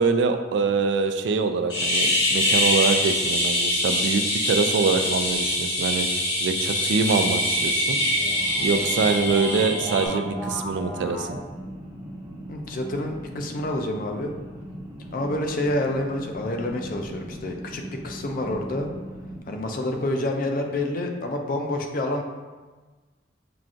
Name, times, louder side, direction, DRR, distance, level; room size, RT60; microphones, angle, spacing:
voice 1, 0.0-6.1 6.4-8.0 8.6-11.4, right 4 dB, 80° right, 7 dB, 0.3 m, -24 dB
sound 1, 1.7-10.1, left 1 dB, 75° left, 1.3 m, -24 dB
sound 2, 6.0-11.3, left 1 dB, 20° left, 0.7 m, -38 dB
sound 3, 8.0-19.4, right 1 dB, 20° right, 0.6 m, -39 dB
voice 2, 12.5-14.3 15.1-18.9 19.5-22.2, left 1 dB, 50° left, 3 dB, 0.4 m, -28 dB
5.7 x 2.4 x 2.5 m, 1.3 s
head